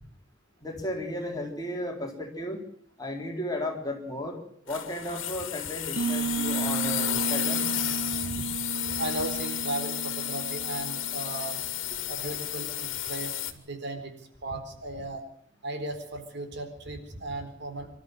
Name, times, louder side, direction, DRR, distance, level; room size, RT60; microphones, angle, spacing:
voice 1, 0.6-2.6 3.0-4.4 4.7-7.7, left 1 dB, 20° left, 1 dB, 4.0 m, -34 dB
sound 1, 4.7-13.5, left 11 dB, 70° left, 2.1 m, -32 dB
sound 2, 6.0-11.5, right 5 dB, 75° right, 3.3 m, -34 dB
voice 2, 8.1-8.5 8.9-11.6 12.1-15.2 15.6-17.9, right 2 dB, 60° right, 6 dB, 4.0 m, -36 dB
25.5 x 13.0 x 7.9 m, 0.63 s
head